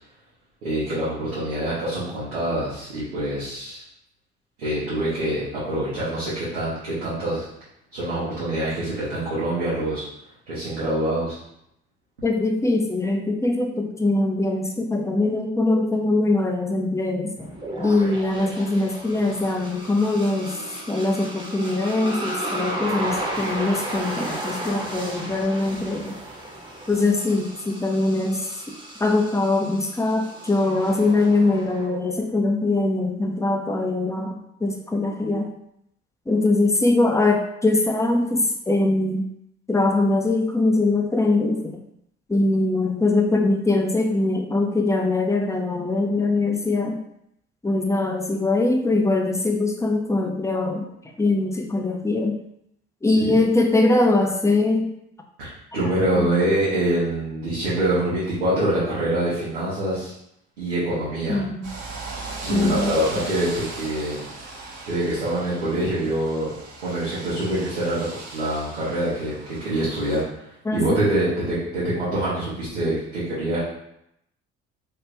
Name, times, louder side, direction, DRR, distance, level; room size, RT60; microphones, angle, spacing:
voice 1, 0.6-3.8 4.6-7.4 7.9-10.0 10.5-11.4 53.1-53.4 55.4-60.1 60.6-61.4 62.4-64.2 64.9-66.5 66.8-68.1 68.3-69.3 69.6-73.6, right 1 dB, 90° right, -11 dB, 1.0 m, -25 dB
voice 2, 12.2-17.5 17.8-20.6 20.9-26.2 26.9-28.4 29.0-35.5 36.3-39.3 39.7-41.8 42.3-47.0 47.6-50.9 51.2-52.4 53.0-54.9 56.1-56.3 61.3-61.7 62.5-63.0 70.7-71.0, left 2 dB, 10° left, 2 dB, 0.5 m, -22 dB
sound 1, 17.4-31.9, right 1 dB, 15° right, 0.9 m, -34 dB
sound 2, 61.6-70.2, right 3 dB, 50° right, 0.9 m, -38 dB
2.9 x 2.4 x 3.4 m, 0.78 s
hypercardioid pair, 55°, 32 cm